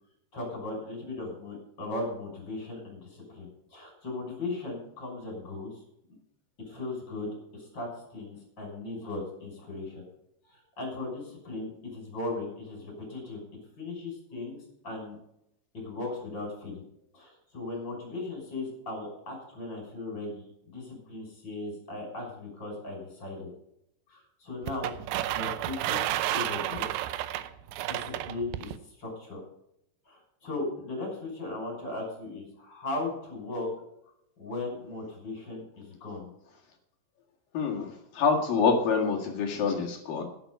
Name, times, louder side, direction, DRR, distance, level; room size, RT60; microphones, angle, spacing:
voice 1, 0.3-5.7 6.6-10.0 10.5-13.4 13.8-15.2 15.7-16.8 17.1-23.5 24.1-24.9 25.3-26.0 26.3-26.9 27.9-29.4 30.1-33.7 34.4-36.3, left 2 dB, 25° left, 1 dB, 6.3 m, -37 dB
sound 1, 24.7-28.8, right 13 dB, 80° right, 2.8 m, -31 dB
voice 2, 37.5-40.2, left 5 dB, 55° left, 1 dB, 3.3 m, -26 dB
12.0 x 11.0 x 5.5 m, 0.76 s
omnidirectional pair, 5.2 m